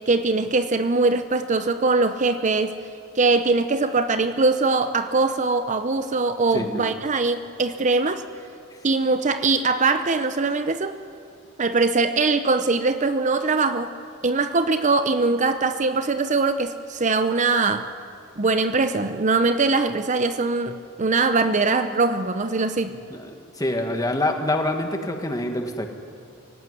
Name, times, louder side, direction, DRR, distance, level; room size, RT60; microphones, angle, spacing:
voice 1, 0.1-2.7 3.1-8.2 8.8-11.0 11.6-13.9 14.2-17.9 18.4-22.9, right 3 dB, 35° right, 10 dB, 0.7 m, -22 dB
voice 2, 23.6-25.9, left 1 dB, 15° left, 4 dB, 1.9 m, -25 dB
24.5 x 17.0 x 9.9 m, 2.5 s
head